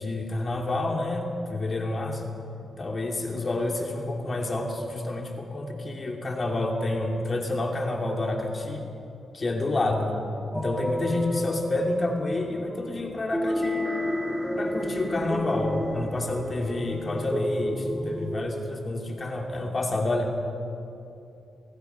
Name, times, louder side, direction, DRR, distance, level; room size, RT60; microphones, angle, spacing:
voice 1, 0.0-2.3 2.8-8.8 9.3-10.1 10.5-13.9 14.6-20.3, left 2 dB, 35° left, 1 dB, 2.8 m, -29 dB
sound 1, 10.5-18.3, left 1 dB, ahead, 1.7 m, -31 dB
26.0 x 17.5 x 5.7 m, 2.7 s
cardioid pair, 115°, 0 cm